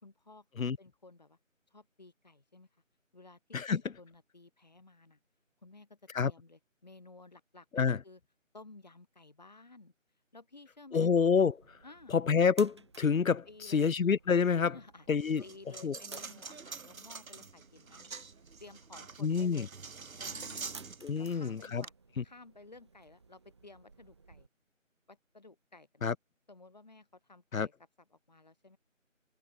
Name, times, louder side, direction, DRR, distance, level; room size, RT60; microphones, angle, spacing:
voice 1, 0.0-1.4 1.7-2.7 3.1-5.2 5.6-8.2 8.5-9.9 10.3-11.1 11.8-12.1 13.5-14.0 14.6-15.1 15.4-18.1 18.6-19.7 20.2-20.8 21.2-21.9 22.2-24.5 25.1-26.1 26.5-27.7 28.1-28.8, left 3 dB, 30° left, 3.6 m, -55 dB
voice 2, 10.9-11.5 12.1-14.7 15.1-15.4 15.8-16.0 19.2-19.7 21.0-21.8 22.2-22.3 26.0-26.1 27.5-27.7, left 6 dB, 85° left, 0.8 m, -27 dB
sound 1, 11.4-24.5, right 4 dB, 20° right, 6.0 m, -57 dB
Coin (dropping), 15.2-21.9, right 5 dB, 90° right, 1.0 m, -46 dB
figure-of-eight pair, 175°, 40 cm